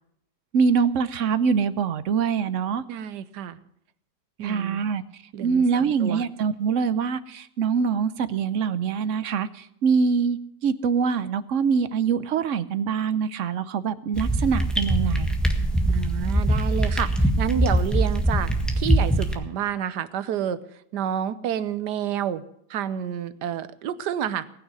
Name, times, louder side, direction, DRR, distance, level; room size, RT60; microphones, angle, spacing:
voice 1, 0.5-2.8 4.4-15.3, right 6 dB, 60° right, 14 dB, 0.9 m, -24 dB
voice 2, 2.9-3.6 4.4-4.8 5.3-6.2 15.9-20.6 20.9-22.4 22.7-24.5, right 9 dB, 80° right, 14 dB, 1.3 m, -29 dB
sound 1, 14.1-19.3, right 1 dB, ahead, 1.4 m, -22 dB
19.0 x 6.4 x 9.4 m, 0.76 s
omnidirectional pair, 1.8 m